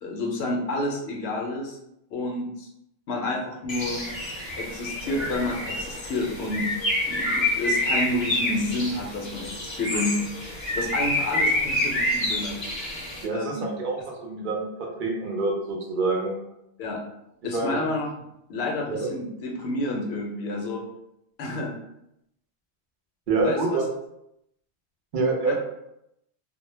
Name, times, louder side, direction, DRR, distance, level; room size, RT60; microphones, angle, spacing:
voice 1, 0.0-1.8 2.1-2.7 3.1-4.0 4.6-6.7 7.1-10.2 10.7-12.6 13.3-13.7 16.8-17.0 17.4-18.1 18.5-20.8 21.4-21.7 23.4-23.8 25.5-25.6, left 2 dB, 80° left, 1 dB, 0.8 m, -29 dB
Bird, 3.7-13.2, left 1 dB, 35° left, 0.6 m, -28 dB
voice 2, 13.2-16.4 17.5-17.8 18.9-19.1 23.3-23.9 25.1-25.6, right 3 dB, 55° right, 0 dB, 0.7 m, -26 dB
2.1 x 2.0 x 3.1 m, 0.81 s
omnidirectional pair, 1.1 m